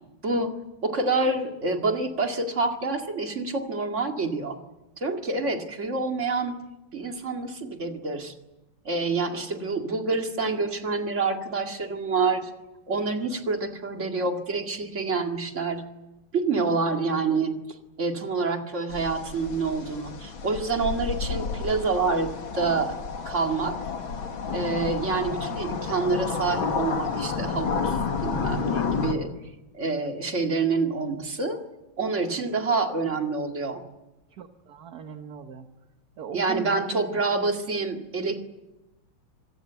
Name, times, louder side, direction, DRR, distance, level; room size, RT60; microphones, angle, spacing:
voice 1, 0.8-4.6 5.0-6.6 6.9-8.4 8.8-12.5 12.9-15.8 16.3-17.5 18.0-23.0 23.2-23.9 24.5-29.3 29.7-31.6 32.0-33.8 36.3-38.5, right 3 dB, 35° right, 4 dB, 2.4 m, -27 dB
sound 1, 18.9-29.1, left 5 dB, 70° left, 2.7 m, -30 dB
voice 2, 34.3-35.7 36.2-37.0, right 8 dB, 50° right, 7 dB, 1.6 m, -39 dB
26.0 x 21.0 x 8.1 m, 1.0 s
omnidirectional pair, 2.3 m